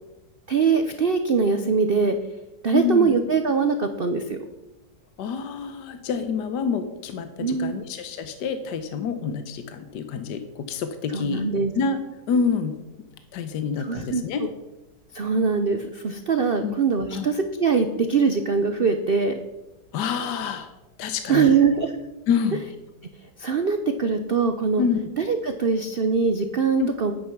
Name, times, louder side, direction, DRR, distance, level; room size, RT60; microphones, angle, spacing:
voice 1, 0.5-2.2 2.6-4.4 7.4-7.8 11.1-11.7 13.8-14.2 15.1-19.4 21.3-21.9 23.4-24.8 25.2-27.1, right 5 dB, 70° right, 7 dB, 0.5 m, -22 dB
voice 2, 2.7-3.1 5.2-11.4 11.7-12.0 12.3-12.7 13.3-14.4 16.6-16.8 17.1-17.3 19.9-20.7 21.0-21.5 22.3-22.6 24.8-25.0 26.8-26.9, left 6 dB, 70° left, 8 dB, 1.4 m, -27 dB
9.5 x 9.2 x 5.9 m, 1.0 s
omnidirectional pair, 2.0 m